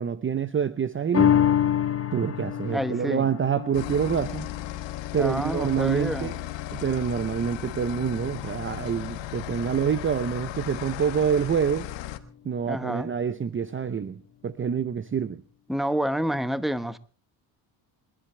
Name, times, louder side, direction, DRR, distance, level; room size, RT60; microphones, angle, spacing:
voice 1, 0.0-1.3 2.1-4.5 5.1-6.4 6.7-11.9 12.4-15.4, right 7 dB, 30° right, 0.7 m, -27 dB
sound 1, 1.1-7.8 8.3-8.4, left 9 dB, 30° left, 1.1 m, -28 dB
voice 2, 2.7-3.3 5.2-6.3 12.7-13.1 15.7-17.0, equal, ahead, 1.0 m, -28 dB
sound 2, 3.7-12.2, left 14 dB, 80° left, 1.3 m, -36 dB
27.5 x 11.5 x 3.3 m
supercardioid pair, 80°, 44 cm